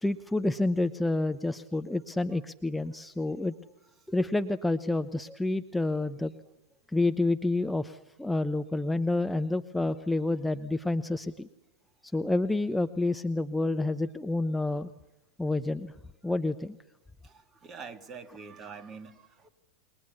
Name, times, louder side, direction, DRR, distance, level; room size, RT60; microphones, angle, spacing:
voice 1, 0.0-3.5 4.1-6.3 6.9-11.5 12.1-14.9 15.4-15.9 16.2-16.7, left 2 dB, 5° left, 8 dB, 0.9 m, -29 dB
voice 2, 17.2-19.5, right 5 dB, 25° right, 10 dB, 2.2 m, -45 dB
29.0 x 23.0 x 7.1 m, 0.95 s
figure-of-eight pair, 90°, 0 cm